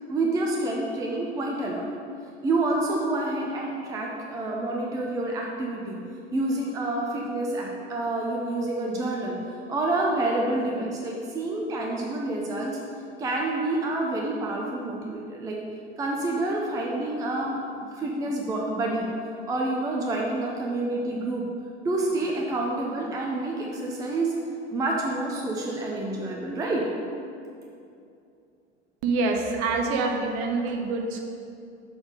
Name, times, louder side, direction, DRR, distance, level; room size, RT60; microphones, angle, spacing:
voice 1, 0.1-1.9 2.4-6.0 6.3-9.4 9.7-12.8 13.2-15.6 16.0-17.6 17.9-19.1 19.5-21.4 21.8-24.4 24.7-26.9, right 2 dB, 10° right, -1 dB, 0.5 m, -28 dB
voice 2, 29.0-31.2, right 3 dB, 40° right, 3 dB, 0.9 m, -26 dB
6.8 x 4.1 x 5.2 m, 2.5 s
figure-of-eight pair, 90°, 35 cm